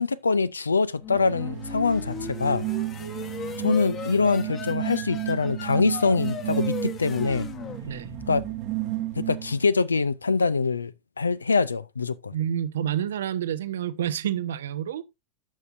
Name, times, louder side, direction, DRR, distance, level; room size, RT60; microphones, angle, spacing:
voice 1, 0.0-2.6 3.6-7.5 8.3-8.4 9.2-12.3, left 4 dB, 80° left, 0.5 m, -24 dB
sound 1, 1.0-8.6, left 6 dB, 35° left, 1.3 m, -38 dB
sound 2, 1.1-9.7, right 15 dB, 40° right, 0.9 m, -33 dB
voice 2, 12.3-15.0, right 10 dB, 65° right, 0.6 m, -28 dB
13.5 x 5.6 x 2.6 m
figure-of-eight pair, 90°, 0 cm